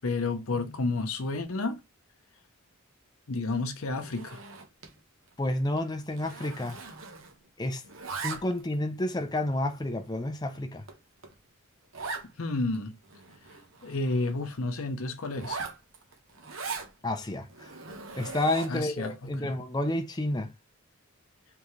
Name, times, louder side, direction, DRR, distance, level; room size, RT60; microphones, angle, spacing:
voice 1, 0.0-1.8 3.3-4.4 12.4-13.0 13.8-15.6 18.7-19.5, left 3 dB, 80° left, 0.8 m, -31 dB
Zipper (clothing), 4.0-5.0 5.3-5.5 5.8-7.5 7.7-8.7 9.3-9.4 10.0-10.1 10.5-10.6 10.9-11.0 11.2-11.3 11.9-12.3 12.7-12.8 13.0-14.3 15.3-16.9 17.5-18.9, right 4 dB, 65° right, 1.1 m, -40 dB
voice 2, 5.4-6.8 7.6-7.8 8.2-10.8 17.0-17.7 18.1-20.5, left 1 dB, 20° left, 0.5 m, -30 dB
3.8 x 3.4 x 3.2 m
head